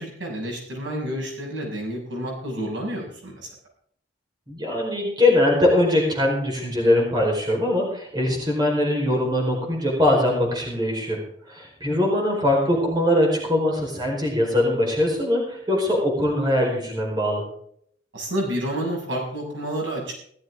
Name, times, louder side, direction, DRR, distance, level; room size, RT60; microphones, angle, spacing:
voice 1, 0.0-3.4 18.1-20.1, right 1 dB, 90° right, -2 dB, 7.0 m, -29 dB
voice 2, 4.5-11.2 11.5-17.4, left 1 dB, 20° right, -1 dB, 4.8 m, -22 dB
16.5 x 14.0 x 3.8 m, 0.65 s
head